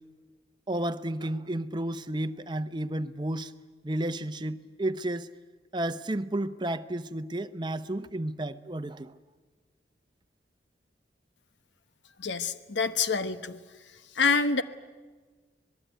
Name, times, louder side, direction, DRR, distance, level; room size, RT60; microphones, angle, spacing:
voice 1, 0.7-3.5 3.8-5.3 5.7-9.1, right 1 dB, 25° right, 0.8 m, -32 dB
voice 2, 12.2-13.6 14.2-14.6, left 5 dB, 90° left, 1.1 m, -26 dB
26.0 x 20.0 x 9.2 m
head